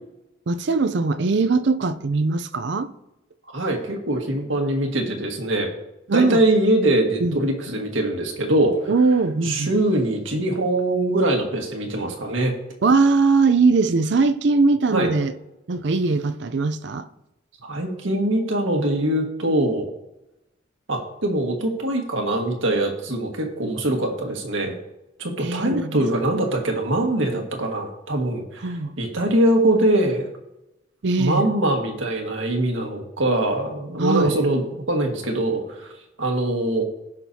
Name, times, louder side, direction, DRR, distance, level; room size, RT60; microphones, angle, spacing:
voice 1, 0.5-2.9 6.1-6.4 7.2-7.4 8.9-9.7 12.8-15.3 15.7-17.1 25.4-26.0 28.6-28.9 31.0-31.5 34.0-34.3, right 4 dB, 60° right, 0.5 m, -20 dB
voice 2, 3.5-5.7 6.1-8.9 9.4-12.5 14.9-15.1 17.6-19.9 20.9-24.7 25.2-30.3 31.2-35.9 36.2-36.8, right 1 dB, 90° right, 1.7 m, -22 dB
16.5 x 6.0 x 2.8 m
head